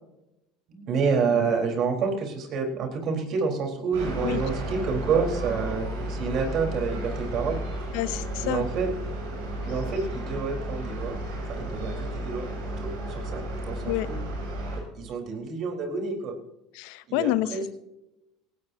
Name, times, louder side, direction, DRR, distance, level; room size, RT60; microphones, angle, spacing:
voice 1, 0.7-7.6 8.4-8.9 9.6-11.2 11.5-14.2 14.9-16.4 17.1-17.7, right 5 dB, 55° right, 3 dB, 4.1 m, -28 dB
sound 1, 3.9-14.8, right 1 dB, 90° right, 7.0 m, -33 dB
voice 2, 7.9-8.6 13.8-14.1 16.7-17.7, left 15 dB, 75° left, 15 dB, 0.8 m, -28 dB
18.5 x 17.5 x 2.8 m, 0.89 s
supercardioid pair, 95°, 0 cm